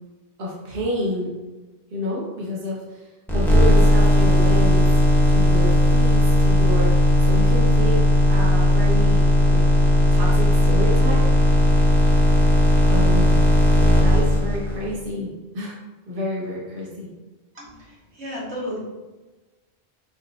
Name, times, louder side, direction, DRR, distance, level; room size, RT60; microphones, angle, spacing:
voice 1, 0.4-1.3 1.9-3.0 3.3-4.9 5.3-9.6 10.1-11.2 12.8-13.4 13.7-15.8 16.1-17.1, left 1 dB, 55° right, -5 dB, 1.2 m, -29 dB
sound 1, 3.3-14.9, equal, ahead, 0.7 m, -16 dB
voice 2, 17.5-18.8, left 1 dB, 85° right, -6 dB, 1.7 m, -33 dB
4.6 x 4.3 x 2.5 m, 1.2 s
omnidirectional pair, 1.1 m